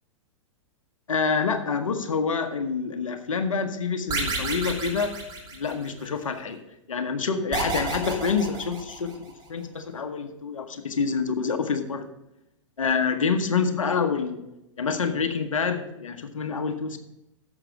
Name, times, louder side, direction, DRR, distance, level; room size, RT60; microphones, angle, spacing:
voice 1, 1.1-5.2 5.5-6.6 6.9-9.2 9.5-12.1 12.8-14.4 14.8-17.0, left 5 dB, 90° left, 7 dB, 1.1 m, -27 dB
sound 1, 4.1-6.1 7.5-9.3, right 3 dB, 25° right, 2.7 m, -30 dB
9.9 x 7.4 x 4.8 m, 0.90 s
hypercardioid pair, 115°, 17 cm